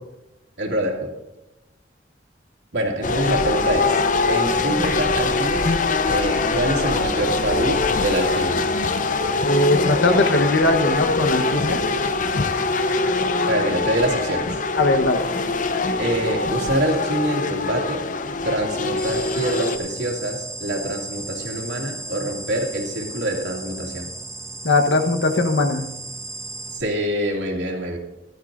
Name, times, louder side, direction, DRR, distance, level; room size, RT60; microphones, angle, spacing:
voice 1, 0.6-1.1 2.7-5.7 6.1-8.7 13.5-14.6 16.0-18.0 18.4-24.1 26.7-28.0, right 1 dB, 80° right, -2 dB, 2.6 m, -25 dB
sound 1, 3.0-19.8, left 3 dB, 50° left, 0.7 m, -23 dB
voice 2, 9.4-11.8 14.8-15.3 24.6-25.9, left 2 dB, 90° left, 6 dB, 1.2 m, -19 dB
sound 2, 19.0-26.8, right 2 dB, 15° right, 1.4 m, -35 dB
16.5 x 12.0 x 2.6 m, 1.0 s
head